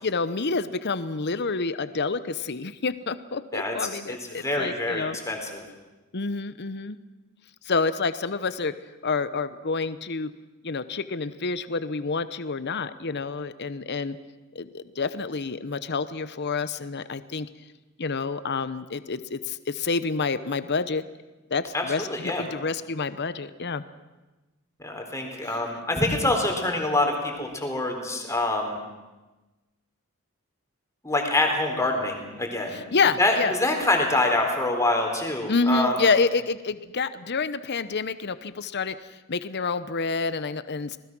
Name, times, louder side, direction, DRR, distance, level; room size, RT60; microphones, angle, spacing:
voice 1, 0.0-5.2 6.1-7.0 7.6-8.7 9.0-10.3 10.6-14.2 14.5-17.5 18.0-21.0 21.5-23.8 25.4-25.6 32.7-33.5 35.5-41.0, left 4 dB, 50° left, 13 dB, 0.9 m, -28 dB
voice 2, 4.1-5.6 21.7-22.4 24.8-28.8 31.0-32.8 33.2-36.0, left 2 dB, 15° left, 2 dB, 3.9 m, -25 dB
26.5 x 20.0 x 6.2 m, 1.1 s
head